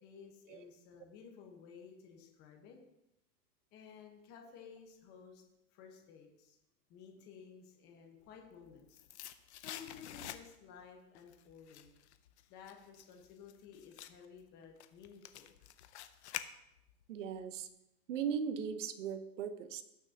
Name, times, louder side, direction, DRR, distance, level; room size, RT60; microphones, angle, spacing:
voice 1, 0.0-2.8 3.7-5.4 5.7-6.6 6.9-9.0 9.6-11.9 12.5-15.5, left 6 dB, 20° left, 2 dB, 1.1 m, -55 dB
sound 1, 8.4-10.8 11.2-17.0 17.3-17.4, left 11 dB, 45° left, 0.6 m, -48 dB
voice 2, 17.1-17.7 18.1-19.8, right 7 dB, 50° right, 11 dB, 0.9 m, -38 dB
18.0 x 6.4 x 2.8 m, 0.87 s
supercardioid pair, 165°, 47 cm